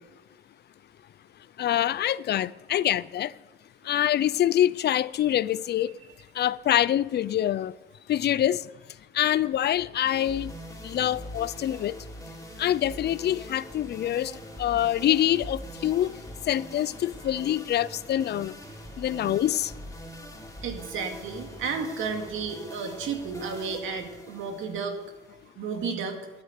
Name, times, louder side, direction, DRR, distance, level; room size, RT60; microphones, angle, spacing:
voice 1, 1.6-3.3 3.9-5.9 6.4-7.7 8.1-8.6 9.1-10.5 10.8-11.9 12.6-14.3 14.6-16.2 16.5-18.5 19.0-19.7, left 11 dB, 55° left, 0.5 m, -25 dB
sound 1, 10.1-25.5, equal, 15° left, 3.0 m, -43 dB
voice 2, 20.6-25.0 25.6-26.2, right 5 dB, 85° right, 2.1 m, -32 dB
12.5 x 9.7 x 6.6 m
cardioid pair, 90°, 20 cm